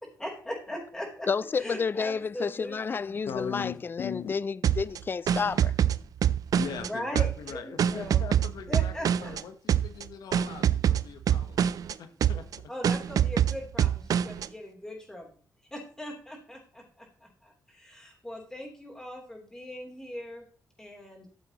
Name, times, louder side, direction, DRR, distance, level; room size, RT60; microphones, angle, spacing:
voice 1, 0.2-1.3 1.6-3.1 6.8-8.3 8.7-9.3 12.7-15.3 15.7-20.4 20.8-21.3, equal, 10° left, 3.3 m, -40 dB
voice 2, 1.3-5.7, left 5 dB, 30° left, 0.3 m, -30 dB
voice 3, 3.3-4.3 6.5-11.6 11.9-12.4, left 8 dB, 90° left, 1.1 m, -40 dB
sound 1, 4.6-6.9 7.2-9.4 9.7-10.0 10.3-11.9 12.2-12.6 12.8-14.5, right 9 dB, 65° right, 0.4 m, -25 dB
13.0 x 7.8 x 3.0 m
cardioid pair, 110°, 7 cm